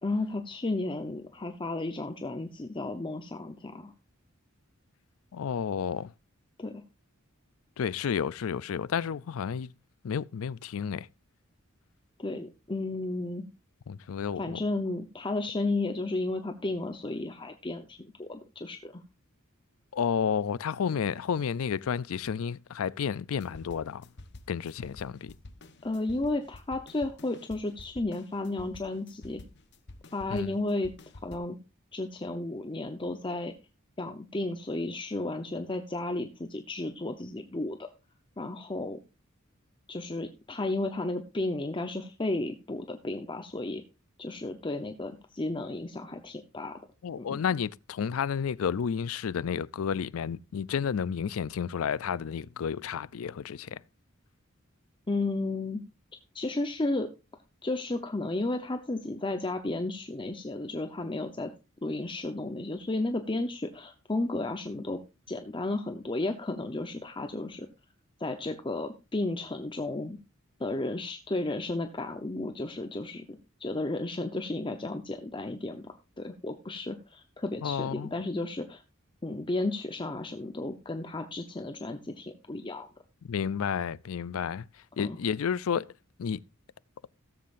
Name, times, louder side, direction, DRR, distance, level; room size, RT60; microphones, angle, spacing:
voice 1, 0.0-3.9 6.6-6.8 12.2-13.5 14.4-19.0 25.8-29.4 30.1-30.9 31.2-31.6 31.9-33.5 34.0-37.9 38.4-39.0 39.9-43.8 44.2-46.8 47.2-47.4 55.1-55.8 56.3-57.1 57.6-61.5 61.8-65.0 65.3-67.7 68.2-70.2 70.6-78.8 79.2-82.9 85.0-85.2, left 2 dB, 25° left, 0.8 m, -33 dB
voice 2, 5.3-6.1 7.8-9.7 10.0-11.1 13.9-14.6 19.9-24.1 24.5-25.3 30.3-30.6 47.0-53.8 77.6-78.1 83.2-84.7 85.0-85.9 86.2-86.4, left 7 dB, 80° left, 0.4 m, -31 dB
sound 1, 23.3-31.4, left 2 dB, 60° left, 1.1 m, -49 dB
17.0 x 7.5 x 2.5 m
head